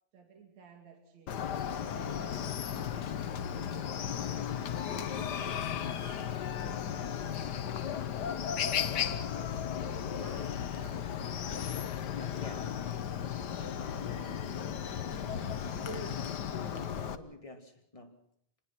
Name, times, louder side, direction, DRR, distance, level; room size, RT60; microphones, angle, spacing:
voice 1, 0.1-7.9 10.2-11.5 13.3-15.6, right 6 dB, 70° right, 3.7 m, -55 dB
Chicken rooster, 1.3-17.2, left 8 dB, 85° left, 0.9 m, -35 dB
voice 2, 8.6-9.8 12.2-13.1 15.1-18.2, left 1 dB, 10° left, 2.2 m, -47 dB
26.5 x 20.0 x 6.0 m
omnidirectional pair, 3.4 m